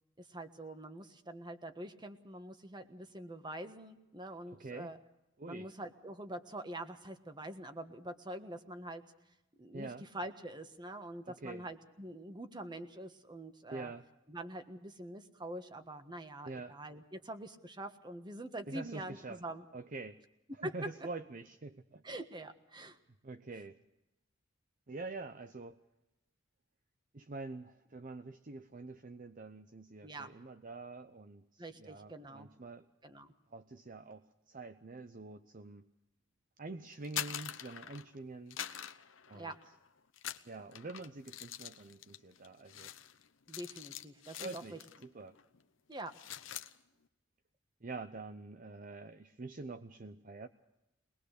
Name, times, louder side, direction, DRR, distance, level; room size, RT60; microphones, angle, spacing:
voice 1, 0.2-5.0 5.5-9.0 9.6-13.9 14.3-19.6 20.6-20.7 22.0-23.0 30.0-30.3 31.6-32.5 33.0-33.3 39.3-39.6 43.5-44.8 45.9-46.1, right 1 dB, 25° right, 8 dB, 1.4 m, -45 dB
voice 2, 4.5-4.9 5.4-5.7 9.7-10.0 11.3-11.7 13.7-14.0 16.4-16.8 18.7-19.4 19.7-20.2 20.6-22.0 23.2-23.8 24.9-25.8 27.1-32.9 33.5-35.9 36.6-38.6 39.3-39.5 40.4-42.9 44.4-45.4 47.8-50.5, right 3 dB, 45° right, 8 dB, 0.7 m, -46 dB
sound 1, 36.9-38.2 38.5-39.8 40.1-45.1 45.4-45.6 45.9-46.7, left 10 dB, 80° left, 0.9 m, -44 dB
23.0 x 20.0 x 6.6 m, 0.91 s
head